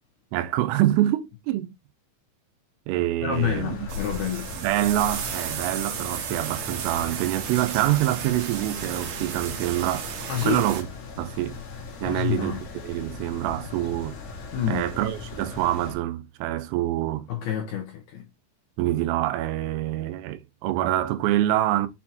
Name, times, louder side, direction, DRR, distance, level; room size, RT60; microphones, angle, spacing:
voice 1, 0.3-1.7 2.9-3.9 4.6-10.1 10.4-10.9 11.2-11.6 12.0-14.2 14.7-17.3 18.8-21.9, right 14 dB, 90° right, 3.2 m, -26 dB
voice 2, 3.2-4.5 10.3-10.6 12.0-12.6 14.5-14.9 17.3-18.3, left 10 dB, 75° left, 2.3 m, -28 dB
sound 1, 3.3-15.9, left 4 dB, 50° left, 2.7 m, -39 dB
sound 2, 3.9-10.8, right 8 dB, 75° right, 3.2 m, -34 dB
7.7 x 4.3 x 2.8 m
omnidirectional pair, 5.8 m